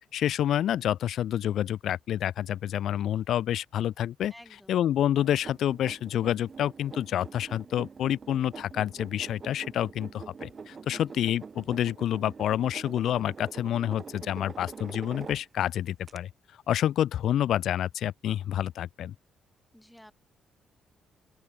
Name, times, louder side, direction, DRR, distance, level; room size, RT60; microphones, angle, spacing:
voice 1, 0.1-4.3 4.7-16.3 16.7-19.1, left 11 dB, 70° left, 0.3 m, -28 dB
voice 2, 4.3-4.8 10.8-11.3 19.7-20.1, equal, 5° left, 3.3 m, -52 dB
sound 1, 5.2-15.7 16.1-16.2, right 5 dB, 40° right, 0.4 m, -45 dB
open air
cardioid pair, 90°, 0 cm